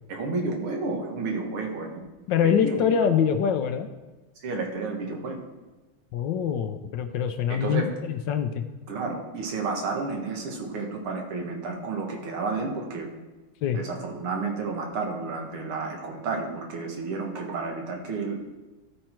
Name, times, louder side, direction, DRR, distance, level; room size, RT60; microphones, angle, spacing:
voice 1, 0.1-2.0 2.4-3.0 4.4-5.4 7.5-7.9 8.9-13.1 13.7-18.5, right 3 dB, 85° right, 1 dB, 2.2 m, -31 dB
voice 2, 2.3-3.9 6.1-8.6 13.6-13.8, left 7 dB, 70° left, 7 dB, 1.2 m, -24 dB
13.0 x 4.4 x 4.4 m, 1.2 s
omnidirectional pair, 2.3 m